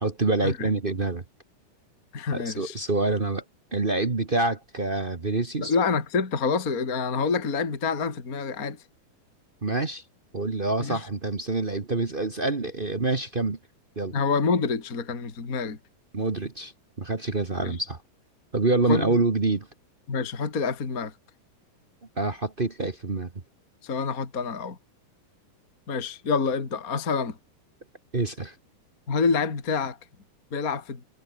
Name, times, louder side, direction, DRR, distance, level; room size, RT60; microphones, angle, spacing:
voice 1, 0.0-1.2 2.3-3.4 3.7-5.7 9.6-10.0 10.3-13.6 14.0-14.1 16.1-16.7 17.0-18.0 18.5-19.7 22.2-23.3 28.1-28.5, right 3 dB, 50° right, 0.6 m, -26 dB
voice 2, 2.1-2.8 5.6-8.8 10.8-11.0 14.1-15.8 17.6-17.7 18.9-19.1 20.1-21.1 23.8-24.8 25.9-27.4 29.1-30.0 30.5-31.0, left 5 dB, 25° left, 2.9 m, -27 dB
omnidirectional pair, 3.8 m